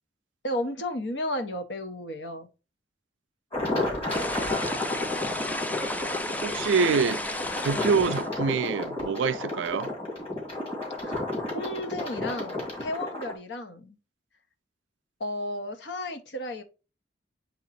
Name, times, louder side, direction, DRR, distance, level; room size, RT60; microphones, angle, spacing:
voice 1, 0.4-2.5 11.0-11.2 11.5-14.0 15.2-16.6, left 1 dB, 70° left, 1.0 m, -33 dB
sound 1, 3.5-13.3, left 2 dB, 30° left, 2.3 m, -32 dB
sound 2, 4.1-8.3, left 1 dB, 10° left, 0.4 m, -33 dB
voice 2, 6.4-7.2 7.6-9.9, right 5 dB, 80° right, 0.4 m, -26 dB
8.0 x 3.0 x 4.1 m
head